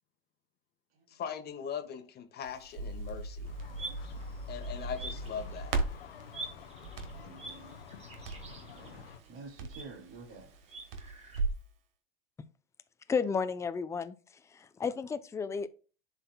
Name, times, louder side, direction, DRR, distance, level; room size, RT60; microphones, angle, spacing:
voice 1, 1.1-3.5 4.5-5.7, left 7 dB, 35° left, 1.1 m, -40 dB
Crackle, 2.4-11.7, right 3 dB, 75° right, 1.3 m, -39 dB
sound 1, 3.4-9.2, left 7 dB, 90° left, 0.8 m, -51 dB
sound 2, 3.6-5.9 6.3-11.4, right 3 dB, 20° right, 1.5 m, -47 dB
voice 2, 7.2-7.8 8.5-10.5, right 4 dB, 45° right, 2.3 m, -50 dB
voice 3, 13.1-14.2 14.5-15.7, left 5 dB, 10° left, 0.4 m, -32 dB
11.0 x 4.1 x 2.2 m
hypercardioid pair, 95°, 29 cm